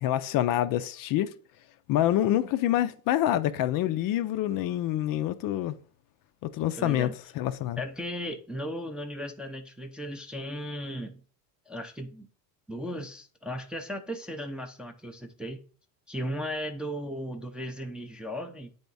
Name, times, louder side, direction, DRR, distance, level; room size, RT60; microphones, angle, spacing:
voice 1, 0.0-1.3 1.9-5.7 6.4-7.8, left 12 dB, 50° left, 0.5 m, -26 dB
voice 2, 6.8-7.1 7.8-11.2 11.7-12.3 12.7-15.6 16.1-18.7, equal, ahead, 0.4 m, -36 dB
8.5 x 3.5 x 3.9 m
supercardioid pair, 115°, 44 cm